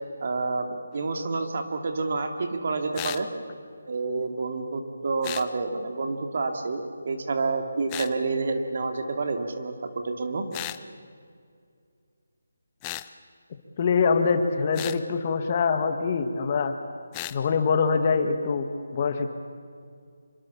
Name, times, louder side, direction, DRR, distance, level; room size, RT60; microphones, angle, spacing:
voice 1, 0.2-3.3 3.9-10.4, right 3 dB, 50° right, 5 dB, 2.6 m, -29 dB
sound 1, 2.9-3.3 5.2-5.5 7.9-8.1 10.5-10.8 12.8-13.1 14.7-15.0 17.1-17.4, left 16 dB, 15° left, 0.6 m, -35 dB
voice 2, 13.8-16.7 17.3-19.3, left 5 dB, 35° left, 7 dB, 1.7 m, -24 dB
26.5 x 23.0 x 7.2 m, 2.3 s
figure-of-eight pair, 165°, 0 cm